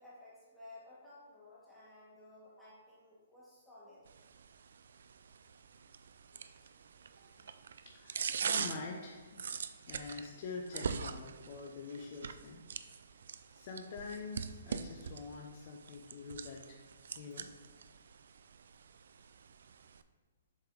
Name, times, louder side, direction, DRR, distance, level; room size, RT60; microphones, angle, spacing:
voice 1, 0.0-4.1, left 2 dB, 5° left, -10 dB, 1.4 m, -56 dB
sound 1, 4.1-20.0, right 6 dB, 70° right, 0.3 m, -43 dB
voice 2, 7.2-7.5 7.9-9.4 9.9-12.6 13.5-16.8 17.2-17.5, left 4 dB, 40° left, 0 dB, 0.7 m, -46 dB
7.4 x 3.4 x 3.8 m, 1.5 s
hypercardioid pair, 150°, 0 cm